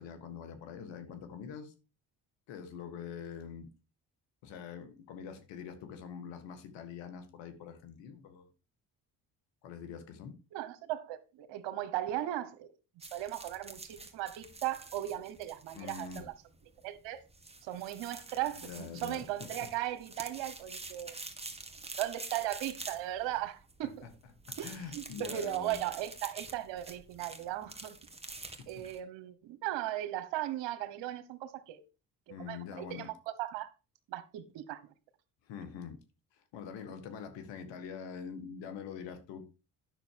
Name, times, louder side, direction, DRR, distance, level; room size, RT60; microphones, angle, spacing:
voice 1, 0.0-1.7 2.5-3.7 4.4-8.5 9.6-10.4 15.7-16.3 18.6-19.3 19.6-19.7 24.0-24.1 24.5-25.8 28.6-28.7 32.3-33.1 35.4-36.0 36.3-39.5, left 7 dB, 80° left, 1.8 m, -44 dB
voice 2, 10.5-12.7 13.1-16.3 16.8-17.2 17.6-21.1 22.0-24.0 24.6-28.0 28.7-31.8 32.3-33.7 34.1-34.8, right 13 dB, 80° right, 1.3 m, -37 dB
sound 1, 13.0-29.0, right 3 dB, 15° right, 1.8 m, -47 dB
10.0 x 6.3 x 4.6 m
supercardioid pair, 65°, 43 cm